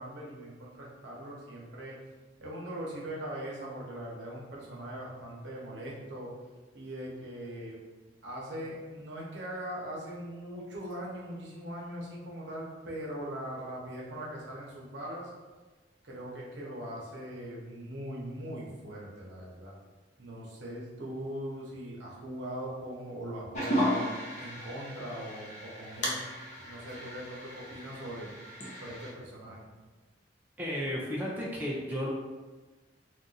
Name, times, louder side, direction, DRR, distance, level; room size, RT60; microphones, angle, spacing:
voice 1, 0.0-2.0 2.4-6.3 6.7-7.8 8.2-15.3 16.0-19.7 20.2-26.2 26.6-28.3 28.8-29.7, right 1 dB, 75° right, -4 dB, 0.9 m, -40 dB
sound 1, 23.5-29.1, equal, 40° left, 0.6 m, -35 dB
voice 2, 30.6-32.1, equal, 10° right, -4 dB, 0.4 m, -33 dB
2.5 x 2.4 x 3.9 m, 1.3 s
head